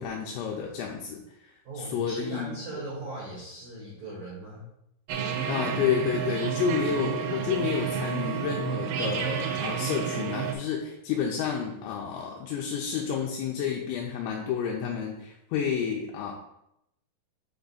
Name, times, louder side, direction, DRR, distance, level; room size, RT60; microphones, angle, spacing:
voice 1, 0.0-2.6 5.5-16.3, left 7 dB, 85° left, -1 dB, 3.2 m, -30 dB
voice 2, 1.6-4.7, right 2 dB, 75° right, -6 dB, 1.7 m, -39 dB
sound 1, 5.1-10.5, right 8 dB, 90° right, 3.5 m, -30 dB
7.9 x 3.5 x 4.0 m, 0.80 s
omnidirectional pair, 5.9 m